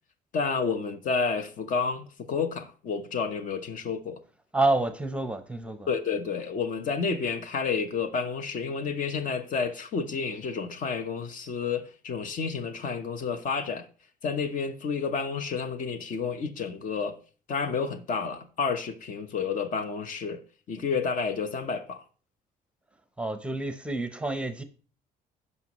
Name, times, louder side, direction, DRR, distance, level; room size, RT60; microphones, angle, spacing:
voice 1, 0.3-4.2 5.9-13.9 14.2-17.2 17.5-20.4 20.7-22.0, left 5 dB, 50° left, 0.9 m, -30 dB
voice 2, 4.5-5.9 23.2-24.6, right 2 dB, 5° right, 0.7 m, -28 dB
15.5 x 5.4 x 3.0 m
cardioid pair, 110°, 17 cm